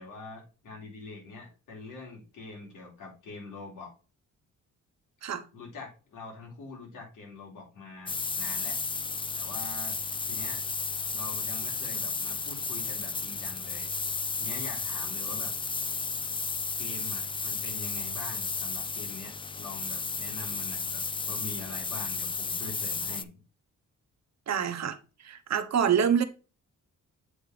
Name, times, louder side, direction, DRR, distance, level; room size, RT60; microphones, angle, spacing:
voice 1, 0.0-3.9 5.5-8.8 9.3-10.0 10.2-10.6 11.1-13.9 14.4-15.5 16.8-23.3, left 3 dB, 85° left, 3.8 m, -44 dB
sound 1, 8.1-23.2, left 4 dB, 15° left, 0.3 m, -33 dB
voice 2, 24.5-25.0 25.2-26.2, right 8 dB, 60° right, 1.0 m, -26 dB
7.9 x 4.4 x 3.3 m
cardioid pair, 110°, 31 cm